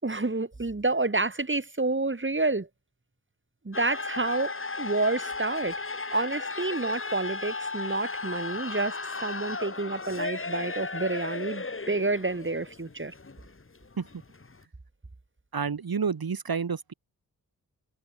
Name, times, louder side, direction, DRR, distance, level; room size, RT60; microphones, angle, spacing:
voice 1, 0.0-2.7 3.6-5.8 6.1-13.1, right 3 dB, 30° right, 6.1 m, -29 dB
sound 1, 3.7-14.6, left 3 dB, 35° left, 2.2 m, -35 dB
voice 2, 15.5-16.9, right 6 dB, 70° right, 4.7 m, -29 dB
cardioid pair, 55°, 38 cm